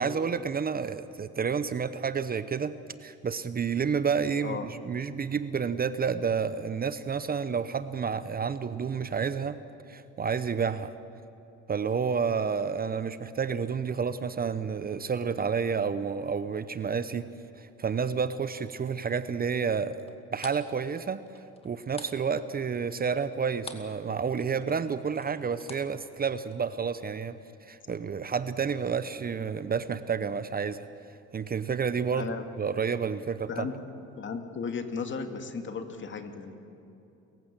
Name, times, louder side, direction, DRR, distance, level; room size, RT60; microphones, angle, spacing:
voice 1, 0.0-9.6 9.9-10.9 11.7-17.2 17.6-21.3 21.6-27.4 27.6-30.9 31.3-33.5, right 6 dB, 30° right, 13 dB, 0.8 m, -30 dB
sound 1, 20.0-24.0 24.3-26.7, left 3 dB, 20° left, 2.3 m, -47 dB
voice 2, 32.1-32.4 33.5-33.7 34.2-36.6, left 5 dB, 40° left, 6 dB, 2.2 m, -35 dB
29.0 x 15.5 x 7.5 m, 2.9 s
supercardioid pair, 85°, 29 cm